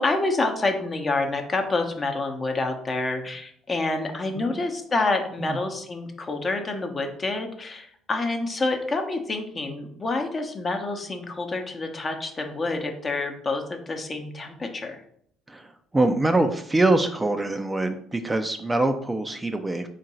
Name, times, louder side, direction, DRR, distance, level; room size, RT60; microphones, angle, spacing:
voice 1, 0.0-15.0, left 3 dB, 35° left, 4 dB, 0.8 m, -28 dB
voice 2, 15.5-19.9, right 2 dB, 20° right, 7 dB, 0.4 m, -24 dB
3.7 x 2.5 x 4.2 m, 0.66 s
hypercardioid pair, 55°, 0 cm